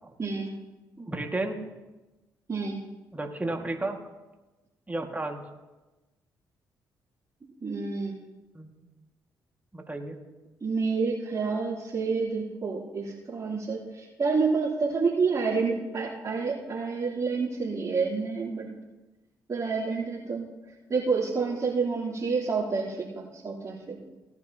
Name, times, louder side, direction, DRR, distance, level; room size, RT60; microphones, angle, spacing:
voice 1, 0.2-0.5 2.5-2.8 7.4-8.1 10.6-18.7 19.5-20.5 20.9-24.0, right 4 dB, 40° right, -9 dB, 3.3 m, -29 dB
voice 2, 1.0-1.6 3.1-4.0 4.9-5.4 8.5-8.7 9.7-10.2, right 2 dB, 20° right, 2 dB, 1.9 m, -32 dB
18.0 x 10.5 x 2.8 m, 1.1 s
supercardioid pair, 55°, 8 cm